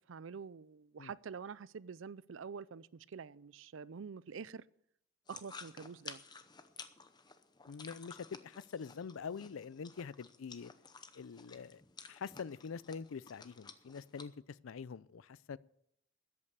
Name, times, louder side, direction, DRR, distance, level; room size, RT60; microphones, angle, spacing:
voice 1, 0.1-4.6 5.3-6.2, right 6 dB, 70° right, 0.4 m, -47 dB
sound 1, 5.3-14.2, left 5 dB, 20° left, 0.7 m, -53 dB
voice 2, 7.7-10.7 11.1-11.8 12.1-15.6, left 6 dB, 85° left, 0.4 m, -45 dB
13.5 x 8.6 x 6.7 m
head